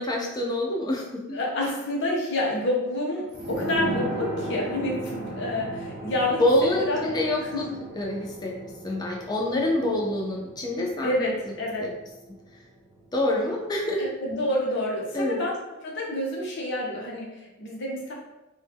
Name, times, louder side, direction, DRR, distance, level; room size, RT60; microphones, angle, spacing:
voice 1, 0.0-1.4 6.4-7.7 8.0-8.5 8.8-11.3 11.8-11.9 13.1-14.0 15.1-15.4, left 1 dB, 20° left, -1 dB, 0.4 m, -26 dB
voice 2, 1.3-7.1 7.4-7.8 11.0-11.8 14.0-15.5 15.8-18.1, left 1 dB, 55° left, -2 dB, 0.6 m, -28 dB
sound 1, 3.3-12.6 12.9-13.0, right 1 dB, 50° right, 0.7 m, -36 dB
2.1 x 2.1 x 3.3 m, 0.98 s
head